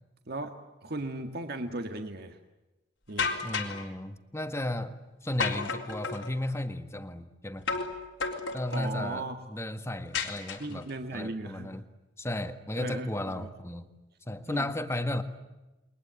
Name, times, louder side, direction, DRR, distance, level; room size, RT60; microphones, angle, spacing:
voice 1, 0.8-2.4 3.1-3.3 8.7-9.4 10.6-11.7 12.8-13.5 14.5-14.7, right 2 dB, 55° right, 6 dB, 1.8 m, -36 dB
sound 1, 3.2-3.8 5.4-6.3 7.7-8.9 10.1-10.9, left 5 dB, 85° left, 3.8 m, -32 dB
voice 2, 3.4-7.7 8.5-11.8 12.2-13.9 14.3-15.2, left 1 dB, 15° left, 9 dB, 1.7 m, -34 dB
29.5 x 22.5 x 9.1 m, 1.0 s
head